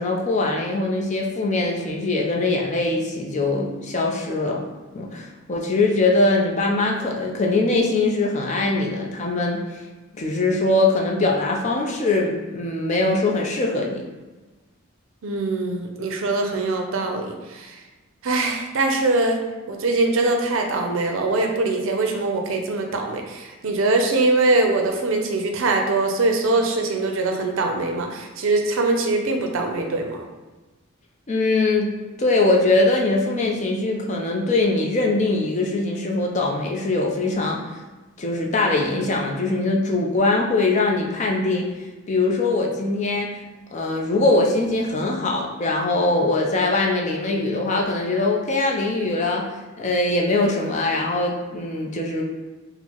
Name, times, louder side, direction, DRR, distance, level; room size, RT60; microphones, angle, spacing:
voice 1, 0.0-4.7 4.9-9.6 10.1-14.0 31.3-31.9 32.2-37.6 38.2-41.7 42.1-43.3 43.7-49.5 49.8-52.2, left 2 dB, 35° left, 0 dB, 0.4 m, -22 dB
voice 2, 15.2-17.8 18.2-19.4 19.7-30.2, right 2 dB, 70° right, 3 dB, 0.5 m, -22 dB
4.4 x 2.0 x 2.9 m, 1.2 s
head